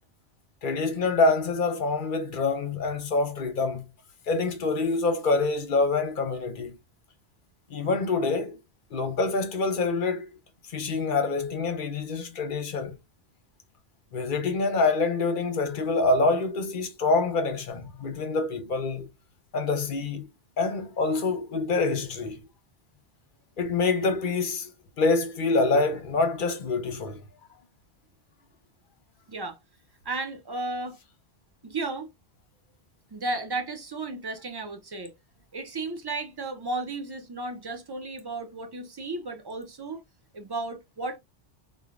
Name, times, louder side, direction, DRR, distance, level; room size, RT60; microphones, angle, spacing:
voice 1, 0.6-3.8 4.3-6.8 7.7-8.6 8.9-10.3 10.7-13.0 14.1-19.1 19.5-20.3 20.6-22.4 23.6-24.7 25.0-27.2, left 3 dB, 55° left, 0.7 m, -26 dB
voice 2, 30.0-31.0 31.6-32.1 33.1-35.1 35.5-40.0 40.3-41.2, right 3 dB, 40° right, 0.3 m, -34 dB
3.1 x 2.1 x 2.4 m
omnidirectional pair, 1.1 m